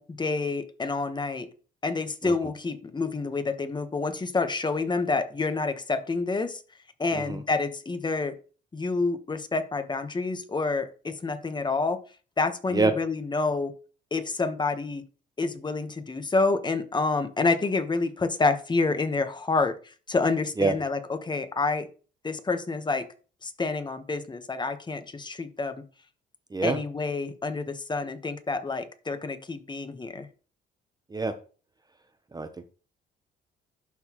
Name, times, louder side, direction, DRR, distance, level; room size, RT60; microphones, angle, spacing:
voice 1, 0.0-1.5 1.8-6.6 7.0-8.3 8.7-12.0 12.4-13.7 14.1-15.0 15.4-21.9 22.2-23.1 23.4-25.8 26.6-30.3, left 3 dB, 20° left, 9 dB, 1.1 m, -28 dB
voice 2, 2.2-2.3 7.1-7.4 12.7-12.9 20.6-20.7 26.5-26.8 31.1-31.3 32.3-32.5, right 3 dB, 20° right, 9 dB, 0.7 m, -25 dB
11.5 x 4.0 x 3.0 m, 0.37 s
cardioid pair, 90°, 20 cm